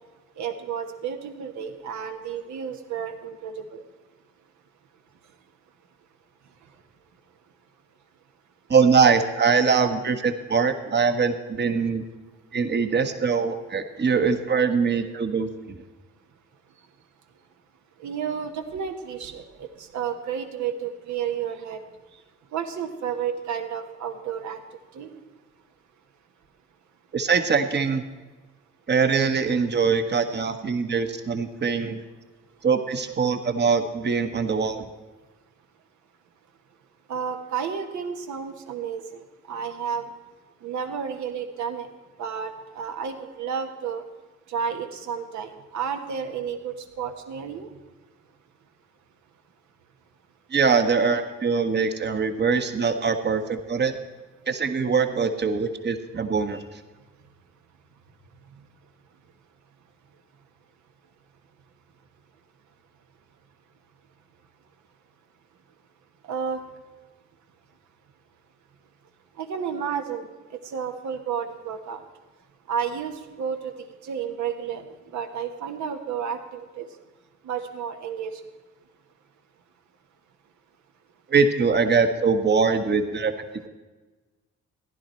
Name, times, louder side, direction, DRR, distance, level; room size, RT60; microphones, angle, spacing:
voice 1, 0.4-3.8 18.0-21.8 22.5-24.6 24.9-25.2 37.1-40.1 40.6-41.9 42.2-44.0 44.5-47.7 56.5-56.6 66.3-66.6 69.4-70.3 70.6-72.0 72.7-76.9 77.4-78.4, right 7 dB, 75° right, 6 dB, 1.3 m, -31 dB
voice 2, 8.7-12.0 12.5-15.8 27.1-28.0 28.9-32.0 32.6-34.8 50.5-53.9 54.5-56.6 81.3-83.3, right 5 dB, 35° right, 8 dB, 1.2 m, -22 dB
15.0 x 10.5 x 4.4 m, 1.3 s
cardioid pair, 80°, 29 cm